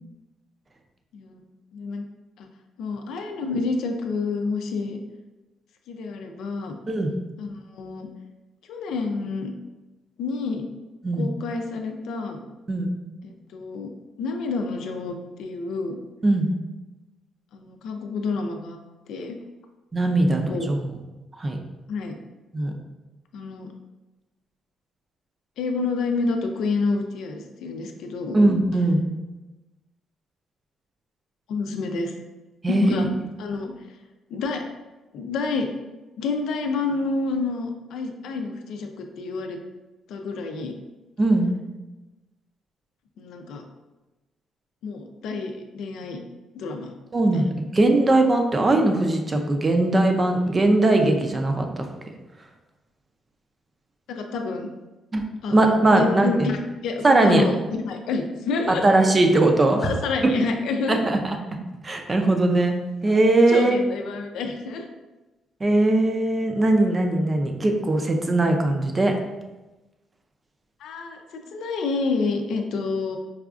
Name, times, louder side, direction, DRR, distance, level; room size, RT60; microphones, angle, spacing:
voice 1, 1.1-1.5 1.7-2.0 2.4-2.5 2.8-5.0 5.9-6.8 7.4-8.1 8.7-9.5 10.2-10.6 11.2-12.4 13.5-13.9 14.2-16.0 17.5-18.8 19.1-19.4 20.3-20.7 21.9-22.1 23.3-23.7 25.6-28.4 31.5-32.1 32.7-33.1 33.4-34.0 34.3-34.7 35.1-35.7 36.2-39.6 40.1-40.8 43.2-43.7 44.8-46.2 46.5-46.9 47.3-47.5 54.1-54.7 55.4-56.6 56.8-58.9 59.8-61.0 63.1-63.2 63.5-64.9 70.8-73.2, left 4 dB, 80° left, 4 dB, 0.4 m, -28 dB
voice 2, 19.9-20.9 21.4-21.6 22.5-22.7 28.3-29.0 32.6-33.1 41.2-41.5 47.1-47.5 47.7-51.8 55.1-55.2 55.5-56.5 57.0-57.5 58.7-59.9 60.2-60.3 60.9-61.2 61.8-62.7 63.0-63.8 65.6-69.1, right 2 dB, 30° right, 4 dB, 0.5 m, -20 dB
4.8 x 2.3 x 2.4 m, 1.1 s
cardioid pair, 90°, 0 cm